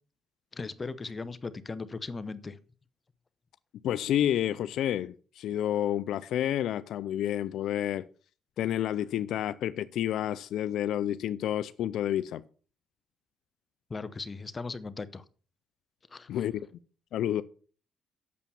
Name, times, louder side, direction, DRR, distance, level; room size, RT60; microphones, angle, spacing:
voice 1, 0.5-2.6 13.9-15.2 16.1-16.3, left 4 dB, 30° left, 0.8 m, -38 dB
voice 2, 3.8-8.1 8.6-12.4 16.3-16.7 17.1-17.4, left 11 dB, 80° left, 0.4 m, -29 dB
8.4 x 7.1 x 6.9 m
cardioid pair, 90°, 0 cm